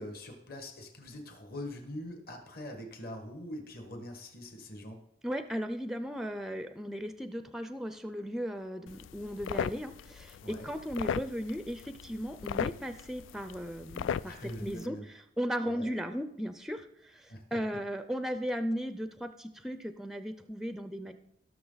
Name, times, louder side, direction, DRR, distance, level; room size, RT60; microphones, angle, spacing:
voice 1, 0.0-5.0 10.4-10.7 14.2-15.0 15.7-15.9 17.3-17.6, left 1 dB, 50° left, 4 dB, 1.7 m, -43 dB
voice 2, 5.2-21.1, equal, ahead, 9 dB, 0.5 m, -36 dB
sound 1, 8.9-14.9, left 8 dB, 90° left, 0.3 m, -38 dB
16.5 x 6.4 x 4.0 m, 0.79 s
head